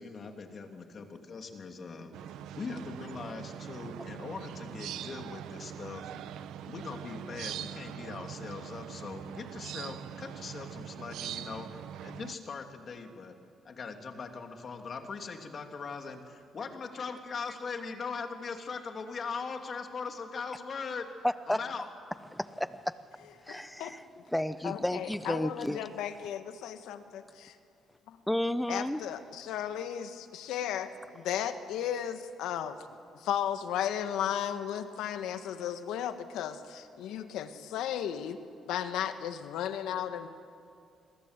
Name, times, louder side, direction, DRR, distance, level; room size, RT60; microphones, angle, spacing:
voice 1, 0.0-2.2 2.5-6.1 6.7-13.4 13.6-21.1 21.5-21.9, left 5 dB, 50° left, 5 dB, 2.9 m, -40 dB
sound 1, 2.1-12.3, right 10 dB, 85° right, 0.9 m, -42 dB
voice 2, 21.2-21.6 22.3-22.9 23.5-24.0 24.3-25.8 28.3-29.0, left 1 dB, 5° left, 14 dB, 0.9 m, -32 dB
voice 3, 23.5-23.9 24.6-27.6 28.1-28.2 28.7-32.8 33.1-38.4 38.6-40.3, left 10 dB, 90° left, 9 dB, 1.6 m, -35 dB
28.0 x 22.0 x 8.3 m, 2.5 s
cardioid pair, 90°, 0 cm